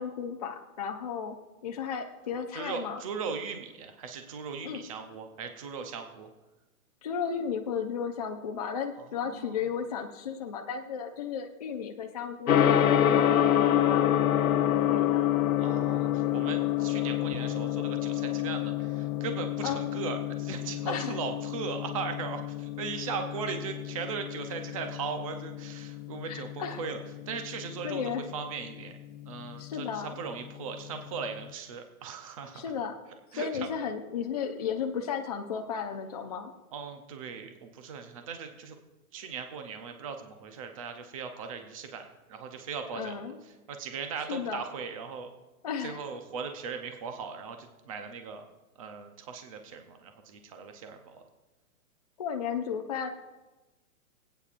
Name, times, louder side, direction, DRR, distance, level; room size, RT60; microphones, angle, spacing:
voice 1, 0.0-1.4 1.6-3.0 4.6-4.8 7.0-14.1 14.7-15.2 19.6-19.9 20.9-21.2 23.5-23.6 26.2-26.8 27.8-28.3 29.6-30.1 32.5-32.9 33.4-36.5 42.9-43.4 44.3-44.6 45.6-46.0 52.2-53.1, left 7 dB, 30° left, 2 dB, 0.5 m, -34 dB
voice 2, 2.5-6.3 9.2-9.6 15.6-27.0 27.3-28.0 28.3-28.9 29.3-32.6 33.3-33.7 36.7-38.8 39.1-43.3 43.7-45.3 45.8-48.4 48.8-51.2, right 5 dB, 25° right, 6 dB, 0.6 m, -38 dB
Gong, 12.5-31.4, left 11 dB, 70° left, 0.9 m, -29 dB
24.5 x 8.9 x 2.5 m, 1.1 s
hypercardioid pair, 165°, 43 cm